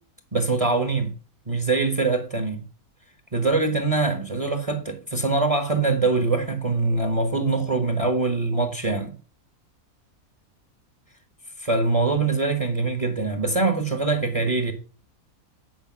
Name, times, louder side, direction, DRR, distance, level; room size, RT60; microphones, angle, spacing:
voice 1, 0.3-1.1 1.5-2.6 3.3-9.1 11.7-14.7, right 3 dB, 25° right, 1.2 m, -23 dB
9.4 x 5.0 x 6.1 m
omnidirectional pair, 1.5 m